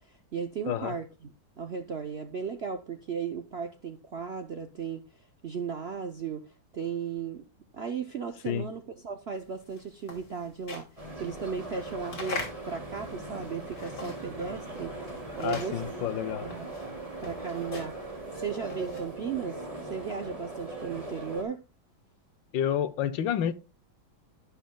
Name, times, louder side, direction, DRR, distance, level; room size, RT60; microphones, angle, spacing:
voice 1, 0.0-7.4 7.7-15.0 15.3-15.8 16.4-16.7 17.2-21.6, right 6 dB, 75° right, 0.5 m, -36 dB
sound 1, 9.5-14.5 14.7-19.2, left 3 dB, 50° left, 3.0 m, -42 dB
sound 2, 11.0-21.4, right 2 dB, 20° right, 2.5 m, -40 dB
voice 2, 15.4-16.5 22.5-23.5, left 9 dB, 75° left, 1.5 m, -29 dB
11.5 x 10.0 x 2.3 m
omnidirectional pair, 2.2 m